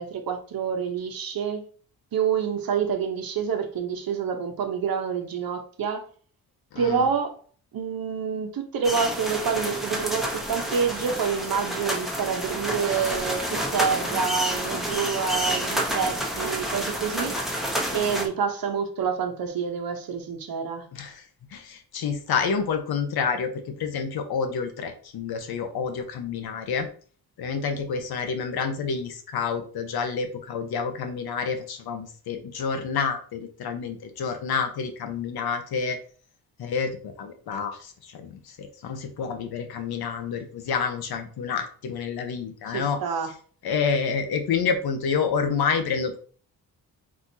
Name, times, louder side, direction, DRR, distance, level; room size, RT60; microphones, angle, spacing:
voice 1, 0.0-1.6 2.1-6.1 6.8-7.4 7.7-17.4 17.9-20.9 42.7-43.3, right 6 dB, 70° right, 1.0 m, -27 dB
voice 2, 6.7-7.1 20.9-21.2 21.5-23.5 23.8-26.9 27.4-36.0 36.6-38.3 38.6-43.0 43.6-46.2, left 6 dB, 85° left, 1.0 m, -28 dB
sound 1, 8.8-18.3, equal, ahead, 0.9 m, -29 dB
4.4 x 4.2 x 2.7 m
cardioid pair, 120°, 37 cm